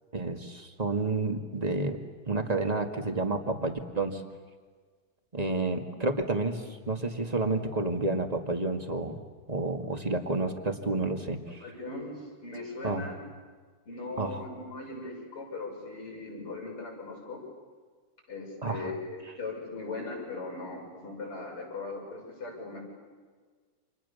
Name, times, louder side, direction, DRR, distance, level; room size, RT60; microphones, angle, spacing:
voice 1, 0.1-2.0 2.3-4.2 5.3-9.2 9.5-11.6 12.8-13.0 14.2-14.4 18.6-18.9, right 2 dB, 20° right, 5 dB, 2.0 m, -30 dB
voice 2, 11.6-13.2 13.9-17.4 18.3-22.8, left 3 dB, 85° left, 0 dB, 8.1 m, -39 dB
29.5 x 27.5 x 7.1 m, 1.5 s
omnidirectional pair, 2.4 m